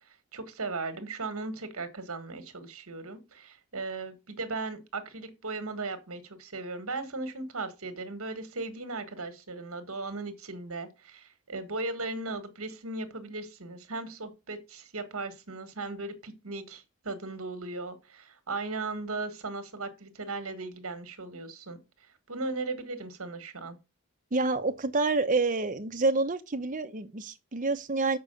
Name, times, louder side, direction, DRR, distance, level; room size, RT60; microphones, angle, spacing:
voice 1, 0.3-21.8 22.3-23.8, right 3 dB, 70° right, 1.5 m, -37 dB
voice 2, 24.3-28.2, right 3 dB, 35° right, 0.8 m, -28 dB
6.7 x 4.7 x 6.6 m
head